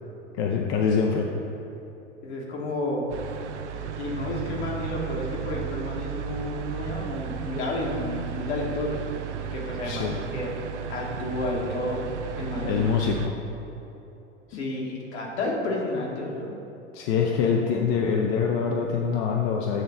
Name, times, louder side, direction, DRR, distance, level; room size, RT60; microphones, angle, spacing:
voice 1, 0.4-1.3 9.8-10.2 12.6-13.3 14.5-14.7 16.9-19.8, left 6 dB, 50° left, 0 dB, 0.6 m, -25 dB
voice 2, 2.2-3.1 3.7-9.0 9.4-10.5 10.9-12.0 12.4-12.8 14.5-16.5, left 2 dB, 65° left, -3 dB, 1.6 m, -31 dB
sound 1, 3.1-13.3, right 8 dB, 75° right, 0.5 m, -34 dB
9.0 x 3.1 x 5.7 m, 3.0 s
figure-of-eight pair, 80°, 35 cm